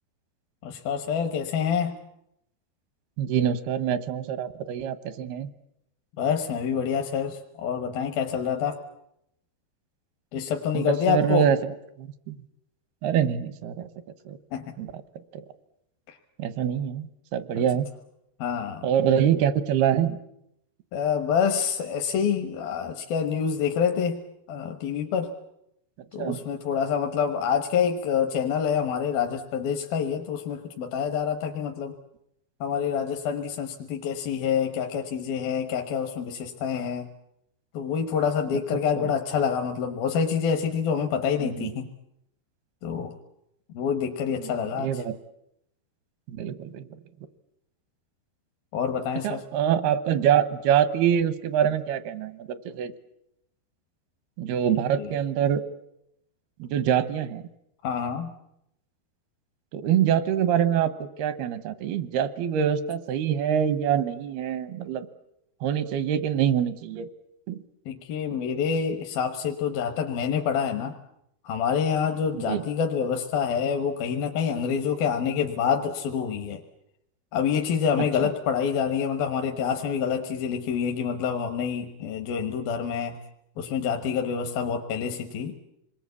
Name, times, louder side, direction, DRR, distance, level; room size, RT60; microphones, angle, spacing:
voice 1, 0.6-1.9 6.2-8.8 10.3-11.5 14.5-14.6 16.1-16.2 18.4-18.9 20.9-24.2 24.5-25.3 26.1-31.9 32.6-37.1 37.7-41.9 42.8-43.1 43.7-45.0 48.7-49.4 55.0-55.1 57.8-58.3 67.9-70.9 71.4-76.6 77.3-83.2 83.6-85.6, left 7 dB, 75° left, 5 dB, 3.1 m, -27 dB
voice 2, 3.2-5.5 10.7-12.4 13.0-13.9 14.3-14.4 14.8-14.9 15.3-15.4 16.4-17.9 18.8-20.2 26.2-26.4 39.0-39.1 41.4-41.7 44.4-45.2 46.3-46.9 49.2-52.9 54.4-55.6 56.6-57.4 59.7-65.1 65.6-67.1 67.5-67.6 72.4-72.6, right 9 dB, 85° right, 14 dB, 3.1 m, -25 dB
27.0 x 21.5 x 8.3 m, 0.79 s
omnidirectional pair, 4.4 m